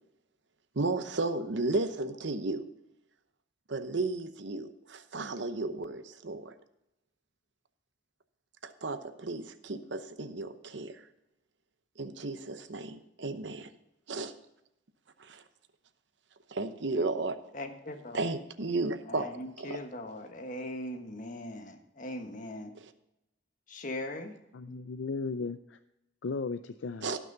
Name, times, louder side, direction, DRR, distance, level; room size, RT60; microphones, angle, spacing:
voice 1, 0.8-2.7 3.7-6.5 8.6-11.0 12.0-13.7 14.1-14.3 15.2-15.4 16.5-17.4 18.1-19.3 19.6-19.8 22.7-22.9 27.0-27.2, right 3 dB, 70° right, 10 dB, 0.9 m, -34 dB
voice 2, 17.5-18.2 19.1-22.7 23.7-24.3 24.7-24.8, left 1 dB, 45° left, 5 dB, 1.4 m, -40 dB
voice 3, 24.5-25.8 26.2-27.1, left 4 dB, 75° left, 10 dB, 0.5 m, -36 dB
17.5 x 6.2 x 4.0 m, 0.86 s
head